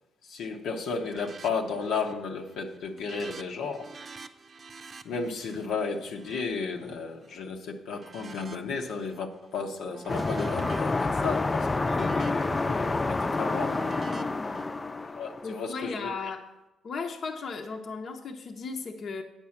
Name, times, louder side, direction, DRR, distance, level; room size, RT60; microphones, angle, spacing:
voice 1, 0.2-3.9 5.0-13.8 15.1-16.1, left 5 dB, 80° left, 1.0 m, -33 dB
sound 1, 1.0-1.5 1.8-2.2 2.5-7.4 7.9-9.2 9.6-14.7, right 4 dB, 40° right, 0.7 m, -47 dB
sound 2, 10.1-15.6, left 3 dB, 25° left, 0.3 m, -28 dB
voice 2, 14.1-14.7 15.4-16.4 16.8-19.2, left 4 dB, 55° left, 0.9 m, -36 dB
9.1 x 5.4 x 7.2 m
cardioid pair, 90°, 0 cm